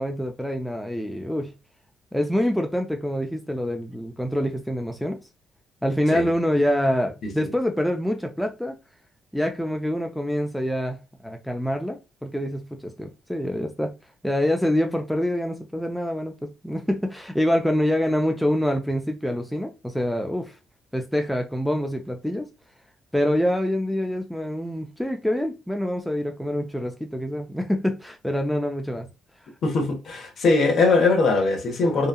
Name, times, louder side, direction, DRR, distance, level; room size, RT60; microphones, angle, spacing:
voice 1, 0.0-1.5 2.1-5.2 5.8-8.7 9.3-13.9 14.2-20.5 20.9-22.5 23.1-29.1, equal, ahead, 0.5 m, -26 dB
voice 2, 29.6-32.1, left 3 dB, 60° left, 0.8 m, -21 dB
2.8 x 2.3 x 2.3 m
cardioid pair, 90°, 0 cm